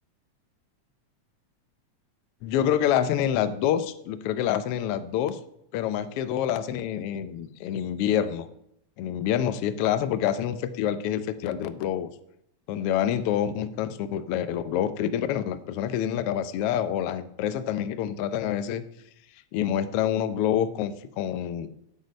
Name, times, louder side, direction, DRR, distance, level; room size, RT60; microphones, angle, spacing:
voice 1, 2.4-5.4 5.7-8.5 9.0-12.1 12.7-18.8 19.5-21.7, left 10 dB, 85° left, 12 dB, 1.3 m, -27 dB
8.3 x 8.1 x 5.2 m, 0.75 s
omnidirectional pair, 3.4 m